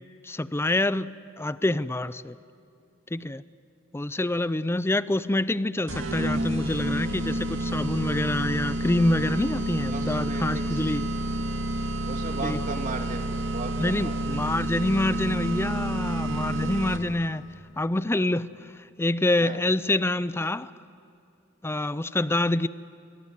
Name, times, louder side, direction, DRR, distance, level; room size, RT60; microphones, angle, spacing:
voice 1, 0.0-2.4 3.1-3.4 3.9-11.1 12.4-12.6 13.8-17.4 17.8-18.5 19.0-20.7 21.6-22.7, left 1 dB, 10° left, 16 dB, 0.5 m, -26 dB
sound 1, 5.9-17.3, right 1 dB, 70° right, 2.4 m, -29 dB
voice 2, 9.9-10.9 12.1-14.4 19.4-19.6, right 3 dB, 40° right, 3 dB, 2.8 m, -36 dB
25.5 x 22.0 x 9.6 m, 2.6 s
head